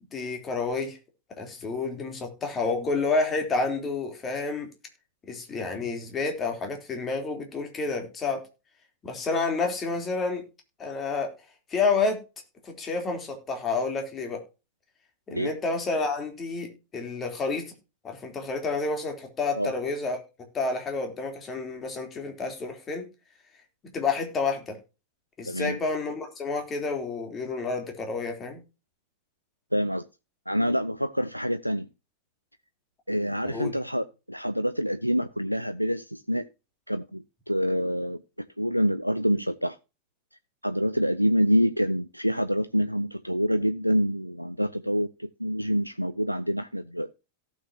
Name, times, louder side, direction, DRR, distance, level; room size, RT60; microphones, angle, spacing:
voice 1, 0.1-1.0 1.3-4.7 5.3-8.4 9.0-10.4 10.8-11.3 11.7-12.2 12.6-14.4 15.3-17.7 18.0-20.2 20.5-23.1 23.9-24.8 25.4-28.6 33.4-33.7, left 4 dB, 25° left, 3.4 m, -29 dB
voice 2, 25.4-25.8 29.7-30.1 30.5-31.9 33.1-36.5 36.9-38.2 38.6-39.8 40.6-47.1, equal, 90° right, 0.5 m, -26 dB
17.5 x 6.5 x 2.8 m
figure-of-eight pair, 90°, 0 cm